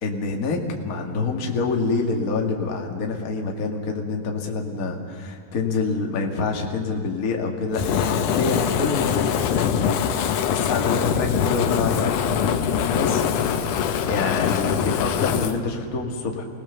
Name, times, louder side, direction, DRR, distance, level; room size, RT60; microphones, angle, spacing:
voice 1, 0.0-10.0 10.5-13.2 14.1-16.4, left 4 dB, 35° left, 1 dB, 1.7 m, -27 dB
Fire, 7.7-15.6, left 8 dB, 75° left, 2.4 m, -23 dB
26.5 x 18.0 x 6.9 m, 2.6 s
omnidirectional pair, 3.7 m